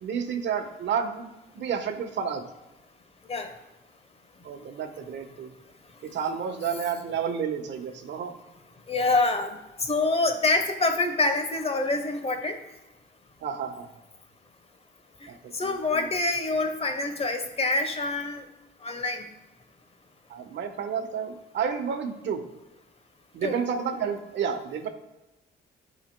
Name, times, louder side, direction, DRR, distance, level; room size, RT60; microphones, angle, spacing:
voice 1, 0.0-2.4 4.4-5.5 6.0-8.3 13.4-13.9 15.3-15.7 15.9-16.1 20.3-22.4 23.3-24.9, right 7 dB, 65° right, 4 dB, 1.2 m, -31 dB
voice 2, 8.9-12.6 15.2-18.4 18.8-19.3 23.4-23.6, left 2 dB, 30° left, 7 dB, 1.0 m, -26 dB
13.0 x 5.1 x 2.2 m, 1.0 s
cardioid pair, 90°, 20 cm